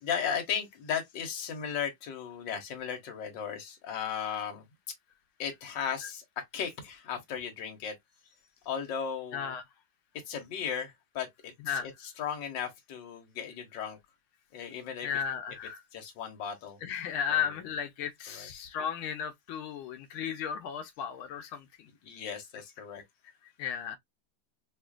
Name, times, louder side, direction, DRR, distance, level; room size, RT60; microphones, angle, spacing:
voice 1, 0.0-4.6 5.4-8.0 8.6-9.6 10.3-14.0 14.5-15.2 15.9-16.8 17.3-17.6 18.3-18.5 22.0-23.0, left 7 dB, 65° left, 1.7 m, -36 dB
voice 2, 9.3-9.6 11.6-11.9 15.0-15.8 16.8-21.9 23.6-24.0, left 8 dB, 90° left, 1.5 m, -34 dB
5.0 x 2.5 x 2.3 m
omnidirectional pair, 2.2 m